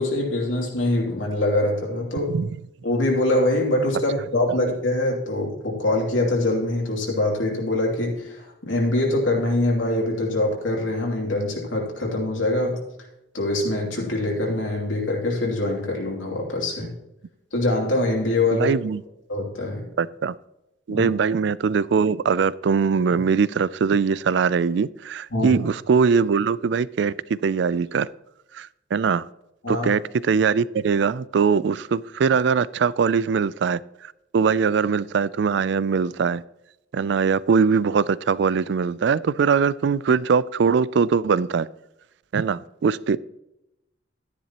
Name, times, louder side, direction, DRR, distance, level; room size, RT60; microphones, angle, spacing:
voice 1, 0.0-2.3 2.8-12.8 13.3-16.9 17.5-18.7 19.3-19.8 20.9-21.1 25.3-25.6 29.6-29.9, left 1 dB, 85° left, 2.9 m, -24 dB
voice 2, 18.6-19.0 20.0-20.3 20.9-28.1 28.5-29.2 29.7-36.4 36.9-41.7 42.3-43.2, right 5 dB, 65° right, 0.3 m, -21 dB
12.5 x 10.0 x 3.0 m
head